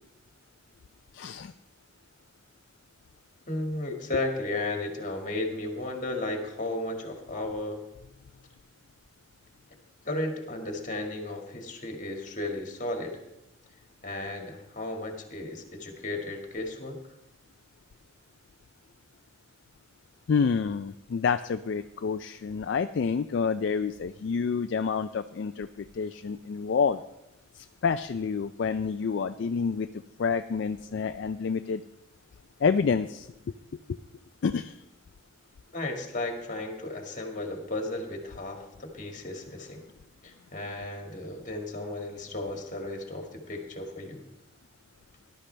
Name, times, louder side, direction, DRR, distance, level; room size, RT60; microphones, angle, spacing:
voice 1, 1.1-1.5 3.9-4.0 20.3-27.0 27.6-29.9 30.2-31.8 32.6-33.3 34.4-34.8, left 5 dB, 60° left, 9 dB, 0.3 m, -28 dB
voice 2, 3.5-7.8 10.1-13.2 14.0-17.0 35.7-39.8 40.2-44.2, left 2 dB, 40° left, 2 dB, 1.9 m, -34 dB
18.5 x 11.5 x 3.3 m, 0.90 s
head